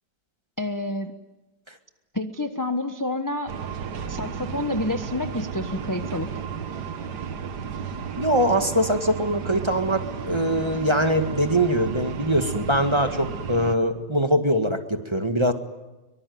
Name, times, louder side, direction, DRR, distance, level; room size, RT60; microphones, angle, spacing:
voice 1, 0.6-1.1 2.1-3.6 4.1-6.3, left 1 dB, 15° left, 7 dB, 1.0 m, -28 dB
sound 1, 3.5-13.8, right 7 dB, 60° right, 1.9 m, -33 dB
voice 2, 8.2-15.5, equal, 15° right, 7 dB, 1.8 m, -22 dB
25.0 x 24.5 x 9.5 m, 1.1 s
omnidirectional pair, 2.0 m